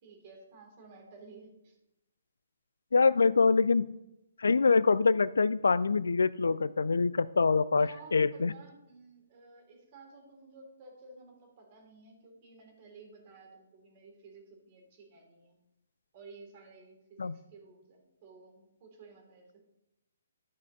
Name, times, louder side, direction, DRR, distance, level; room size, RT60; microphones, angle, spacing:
voice 1, 0.0-1.8 7.8-15.6 16.1-19.6, right 3 dB, 35° right, 2 dB, 2.9 m, -54 dB
voice 2, 2.9-3.9 4.4-8.5 17.2-17.3, left 4 dB, 70° left, 19 dB, 0.3 m, -25 dB
12.5 x 5.6 x 3.9 m, 0.89 s
figure-of-eight pair, 130°, 0 cm